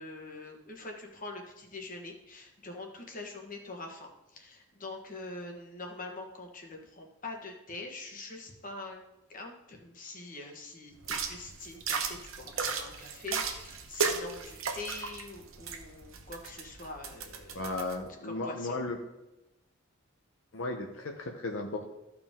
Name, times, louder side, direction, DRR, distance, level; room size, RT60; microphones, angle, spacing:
voice 1, 0.0-9.0 9.3-17.7 18.2-18.8, left 2 dB, 40° left, 2 dB, 1.4 m, -44 dB
toilet brush immersing in water, 11.0-17.9, right 5 dB, 80° right, 1.0 m, -36 dB
voice 2, 17.5-19.0 20.5-21.8, left 2 dB, 70° left, 2 dB, 0.9 m, -35 dB
14.0 x 4.9 x 3.7 m, 0.96 s
head